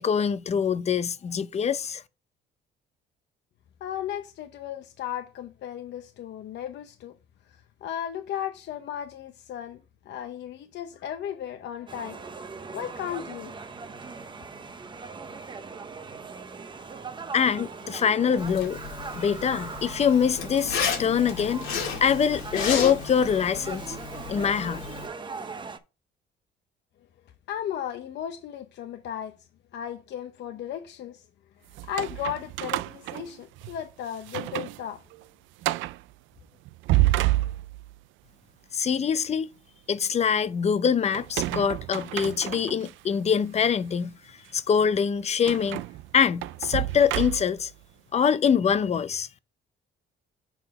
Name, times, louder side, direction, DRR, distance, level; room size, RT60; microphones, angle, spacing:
voice 1, 0.0-2.0 17.3-18.8 19.2-21.7 22.0-24.0 24.3-24.9 38.7-39.5 39.9-44.1 44.5-45.8 46.1-47.7 48.1-49.3, left 7 dB, 35° left, 0.5 m, -24 dB
voice 2, 3.8-7.1 7.8-9.8 10.0-12.2 12.7-13.5 27.5-29.3 29.7-31.2 31.9-35.0, left 9 dB, 60° left, 0.8 m, -35 dB
sound 1, 11.9-25.8, right 4 dB, 25° right, 0.8 m, -40 dB
Zipper (clothing), 18.4-25.1, left 7 dB, 90° left, 2.1 m, -33 dB
sound 2, 31.7-33.8 34.2-34.8 35.1-35.2 35.6-36.0 36.7-38.0 41.1-42.9 43.6-43.7 45.5-47.7, right 17 dB, 75° right, 0.4 m, -29 dB
7.0 x 3.8 x 5.4 m
cardioid pair, 110°, 20 cm